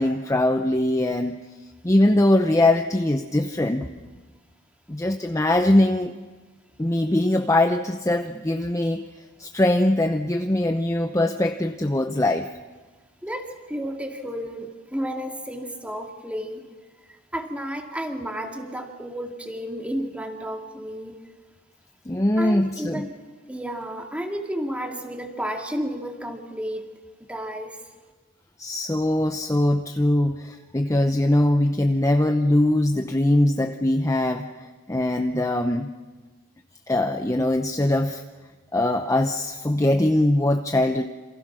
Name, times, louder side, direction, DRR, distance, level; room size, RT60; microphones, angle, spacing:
voice 1, 0.0-1.4 1.8-3.8 4.9-6.1 6.8-9.1 9.4-12.5 22.1-23.1 28.6-35.9 36.9-38.2 38.7-41.1, left 1 dB, 15° left, 6 dB, 0.7 m, -22 dB
voice 2, 13.2-16.7 17.1-21.2 22.4-23.2 23.5-26.9 27.3-27.8, equal, 5° right, 2 dB, 2.5 m, -32 dB
28.0 x 27.0 x 6.3 m, 1.3 s
head